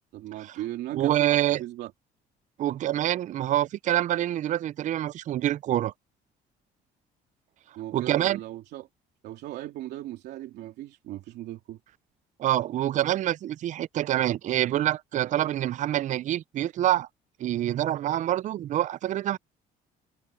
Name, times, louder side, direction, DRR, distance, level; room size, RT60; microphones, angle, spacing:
voice 1, 0.1-1.9 7.8-8.9 9.2-11.8, right 14 dB, 80° right, 2.8 m, -37 dB
voice 2, 0.9-1.6 2.6-5.9 7.9-8.4 12.4-17.1 17.4-19.4, right 13 dB, 45° right, 0.4 m, -26 dB
cardioid pair, 110°, 17 cm